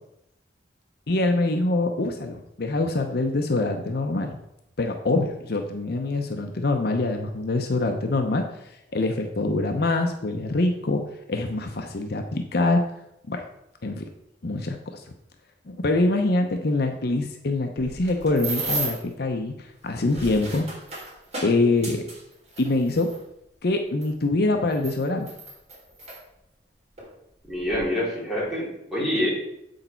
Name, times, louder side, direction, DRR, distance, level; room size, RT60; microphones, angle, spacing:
voice 1, 1.1-4.4 4.8-8.4 8.9-11.0 11.3-12.8 13.3-13.4 13.8-14.0 14.4-15.0 15.7-19.5 19.8-20.6 21.4-22.0 22.6-23.1 23.6-25.3, left 2 dB, 60° left, 4 dB, 0.7 m, -24 dB
sound 1, 17.8-19.1 19.9-23.2 24.0-24.1 24.7-26.2 27.0-27.1 27.5-27.8, right 2 dB, 40° right, 3.4 m, -34 dB
voice 2, 27.5-29.3, left 1 dB, ahead, -7 dB, 3.4 m, -26 dB
8.0 x 6.4 x 4.4 m, 0.83 s
head